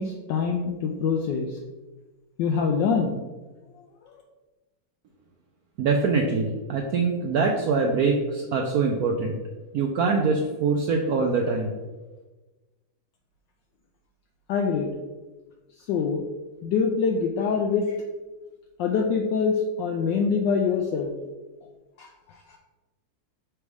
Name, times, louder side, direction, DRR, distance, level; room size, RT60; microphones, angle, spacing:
voice 1, 0.0-1.6 2.4-3.2 14.5-14.9 15.9-16.2 16.6-18.0 18.8-21.1 22.0-22.1, left 5 dB, 75° left, 2 dB, 1.1 m, -24 dB
voice 2, 5.8-9.4 9.7-11.8, right 4 dB, 90° right, 2 dB, 0.8 m, -24 dB
6.2 x 3.4 x 4.7 m, 1.2 s
omnidirectional pair, 2.2 m